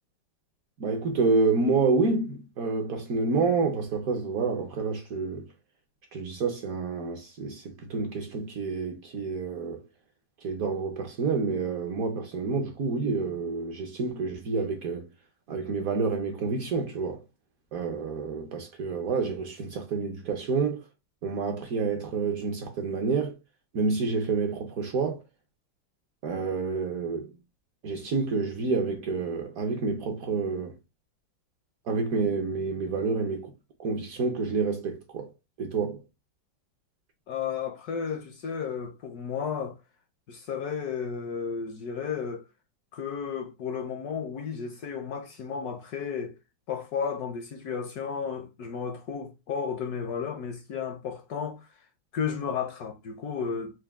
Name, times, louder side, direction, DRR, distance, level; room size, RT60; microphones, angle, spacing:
voice 1, 0.8-5.4 6.1-9.8 10.4-15.1 15.5-17.2 17.7-20.9 21.2-23.4 23.7-25.2 26.2-27.3 27.8-30.7 31.9-33.5 33.8-35.3 35.6-36.0, right 4 dB, 60° right, 1.0 m, -28 dB
voice 2, 37.3-39.8 40.3-42.4 42.9-46.4 46.7-51.7 52.1-53.8, left 6 dB, 70° left, 1.0 m, -33 dB
4.6 x 2.3 x 3.4 m
omnidirectional pair, 2.1 m